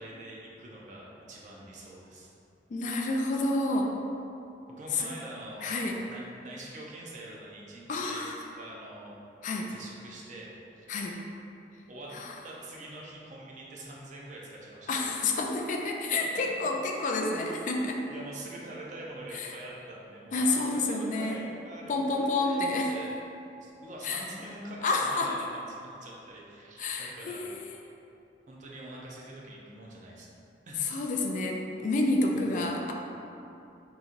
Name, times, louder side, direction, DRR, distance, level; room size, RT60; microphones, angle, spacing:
voice 1, 0.0-2.3 4.7-5.7 6.1-9.1 9.7-11.2 11.9-12.1 12.4-14.9 18.1-22.6 22.9-23.1 23.6-27.4 28.5-30.3 30.7-30.9 32.3-32.7, right 1 dB, 45° right, -3 dB, 0.5 m, -45 dB
voice 2, 2.7-3.9 4.9-5.1 5.6-6.0 7.9-8.4 9.4-9.7 10.9-11.2 12.1-12.3 14.9-18.0 19.3-19.5 20.3-21.4 21.9-22.9 24.0-24.2 24.8-25.3 26.8-27.8 30.8-32.9, left 2 dB, 45° left, 1 dB, 0.3 m, -29 dB
3.8 x 2.9 x 2.5 m, 2.7 s
head